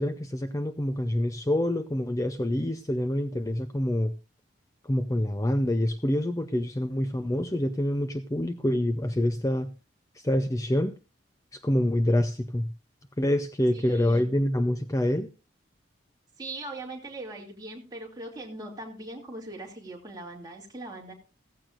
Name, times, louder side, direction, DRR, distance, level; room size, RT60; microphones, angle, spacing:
voice 1, 0.0-4.1 4.8-9.7 10.2-10.9 11.5-12.7 13.2-15.3, left 1 dB, 15° left, 0.5 m, -26 dB
voice 2, 13.7-14.3 16.4-21.1, right 2 dB, 20° right, 2.7 m, -40 dB
15.5 x 15.0 x 2.5 m
head